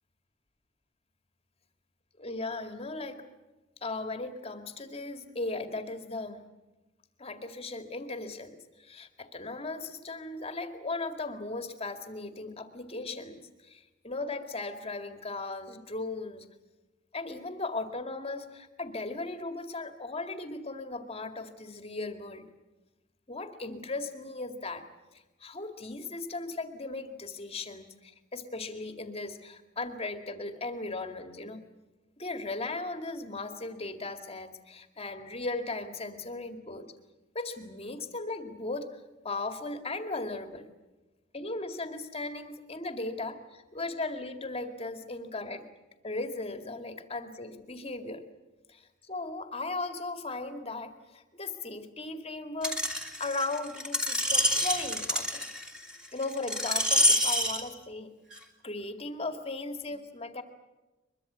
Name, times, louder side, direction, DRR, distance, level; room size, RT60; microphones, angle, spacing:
voice 1, 2.2-3.2 3.8-6.4 7.2-16.5 17.1-22.5 23.3-24.9 25.1-31.7 32.2-36.9 37.3-40.7 41.3-45.7 46.0-48.2 48.7-55.4 56.1-58.1 58.6-60.4, left 3 dB, 30° left, 7 dB, 2.2 m, -37 dB
Screech, 52.6-57.6 58.3-58.4, left 1 dB, 5° right, 2.7 m, -27 dB
23.0 x 22.5 x 8.1 m, 1.1 s
head